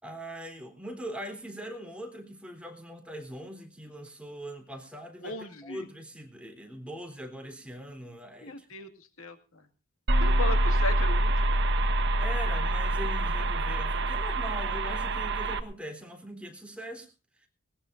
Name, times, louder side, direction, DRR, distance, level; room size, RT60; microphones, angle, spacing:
voice 1, 0.0-8.7 12.2-17.1, equal, 5° right, 4 dB, 3.4 m, -41 dB
voice 2, 5.2-5.8 8.4-8.9 9.2-9.4 10.2-11.5, left 2 dB, 90° left, 6 dB, 2.2 m, -36 dB
sound 1, 10.1-15.6, right 1 dB, 60° right, 1.4 m, -26 dB
20.0 x 19.5 x 2.6 m, 0.32 s
head